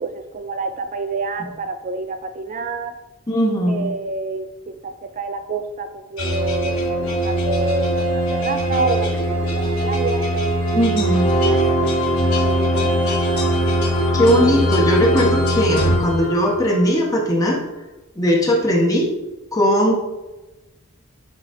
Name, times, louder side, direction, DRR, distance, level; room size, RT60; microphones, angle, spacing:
voice 1, 0.0-2.9 3.7-10.3 11.2-11.7 12.4-13.5, right 3 dB, 40° right, 7 dB, 0.4 m, -28 dB
voice 2, 3.3-3.9 10.7-11.3 14.1-17.6 18.2-19.1 19.5-19.9, equal, 15° left, -2 dB, 1.5 m, -18 dB
sound 1, 6.2-16.8, equal, 85° left, 2.0 m, -20 dB
9.8 x 3.4 x 3.8 m, 1.0 s
head